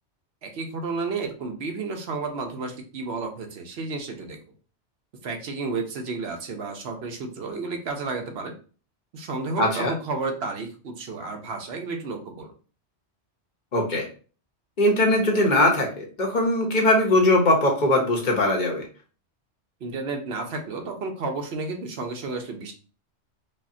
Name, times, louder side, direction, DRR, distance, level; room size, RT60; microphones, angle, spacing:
voice 1, 0.4-4.4 5.2-8.6 9.1-12.5 19.8-22.7, right 3 dB, 65° right, 3 dB, 0.9 m, -32 dB
voice 2, 9.6-9.9 13.7-14.1 14.8-18.8, left 1 dB, 45° left, 1 dB, 0.9 m, -20 dB
5.3 x 2.1 x 2.6 m, 0.37 s
omnidirectional pair, 1.2 m